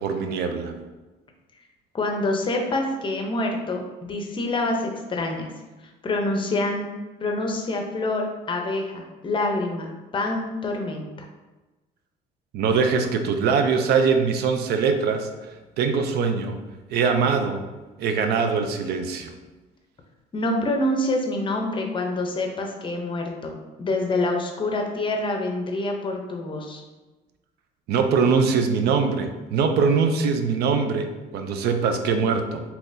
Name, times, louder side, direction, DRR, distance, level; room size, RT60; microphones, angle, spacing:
voice 1, 0.0-0.7 12.5-15.5 15.8-16.6 16.9-17.6 18.0-19.3 27.9-31.1 31.3-32.6, right 5 dB, 75° right, 6 dB, 0.4 m, -22 dB
voice 2, 1.9-5.5 6.0-6.9 7.2-11.1 20.3-26.8, left 2 dB, 30° left, 2 dB, 0.6 m, -26 dB
3.7 x 2.9 x 2.6 m, 1.2 s
cardioid pair, 110°, 17 cm